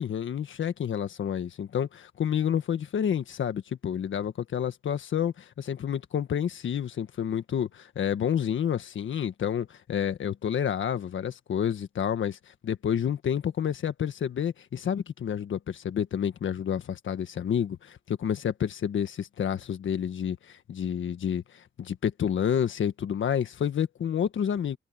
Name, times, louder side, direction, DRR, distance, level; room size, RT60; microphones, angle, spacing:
voice 1, 0.0-24.8, left 8 dB, 65° left, 1.5 m, -29 dB
wide cardioid pair, 130°, 21 cm